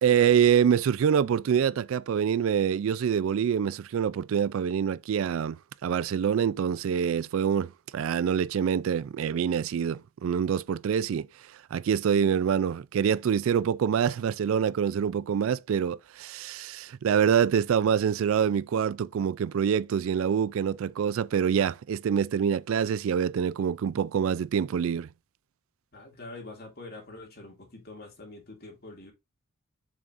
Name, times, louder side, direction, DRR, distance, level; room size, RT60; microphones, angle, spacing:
voice 1, 0.0-25.1, right 8 dB, 65° right, 0.3 m, -26 dB
voice 2, 25.9-29.1, left 2 dB, 45° left, 2.5 m, -45 dB
7.2 x 6.2 x 2.5 m
head